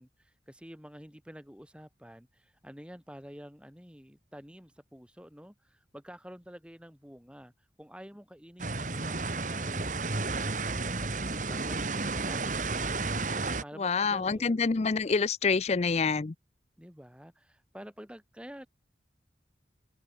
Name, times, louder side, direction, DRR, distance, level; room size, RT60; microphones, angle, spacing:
voice 1, 0.0-12.9 13.6-14.7 16.8-18.7, equal, 5° right, 3.6 m, -49 dB
sound 1, 8.6-13.6, right 3 dB, 45° right, 2.2 m, -32 dB
voice 2, 13.8-16.3, left 4 dB, 35° left, 0.5 m, -27 dB
head